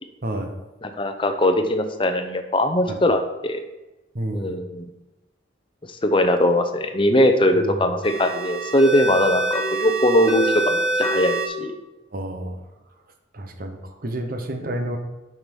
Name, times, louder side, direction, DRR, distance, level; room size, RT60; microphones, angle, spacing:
voice 1, 0.2-0.5 2.9-3.0 4.1-4.6 7.5-7.8 12.1-12.6 13.3-15.0, right 1 dB, 50° right, 5 dB, 1.0 m, -30 dB
voice 2, 0.8-3.6 4.3-4.9 6.0-11.7, left 1 dB, 25° left, 7 dB, 0.8 m, -20 dB
sound 1, 8.0-11.5, right 1 dB, ahead, 3.1 m, -25 dB
7.7 x 5.8 x 5.4 m, 1.0 s
head